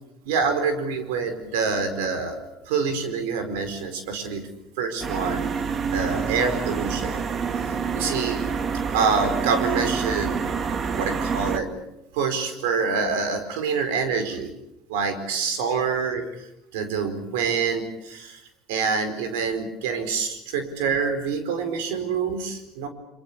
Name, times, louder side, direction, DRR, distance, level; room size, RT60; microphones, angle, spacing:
voice 1, 0.2-2.4 2.7-4.5 4.8-5.5 5.9-7.3 7.9-8.4 8.9-10.4 10.9-11.7 12.1-14.5 14.9-16.5 16.7-18.4 18.7-22.9, right 5 dB, 90° right, 9 dB, 4.6 m, -26 dB
sound 1, 5.0-11.6, right 6 dB, 40° right, 2.0 m, -27 dB
25.5 x 24.0 x 8.3 m, 0.86 s
supercardioid pair, 95°, 0 cm